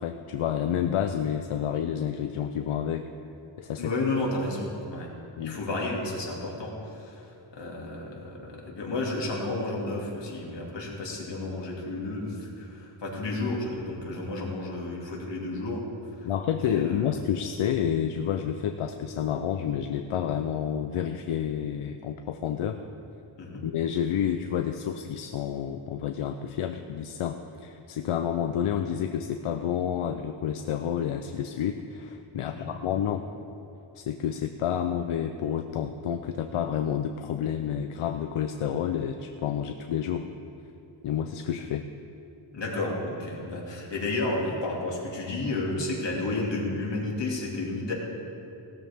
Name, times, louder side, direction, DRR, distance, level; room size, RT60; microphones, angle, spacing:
voice 1, 0.0-3.1 3.6-3.9 5.4-5.6 16.2-22.8 23.6-33.3 34.0-40.3 41.0-41.9, left 9 dB, 80° left, 7 dB, 0.7 m, -29 dB
voice 2, 3.8-5.1 5.4-7.2 7.5-15.8 16.6-17.0 23.4-23.6 32.4-32.7 42.5-47.9, left 2 dB, 55° left, -2 dB, 2.6 m, -32 dB
17.5 x 13.0 x 3.6 m, 2.9 s
wide cardioid pair, 140°, 50 cm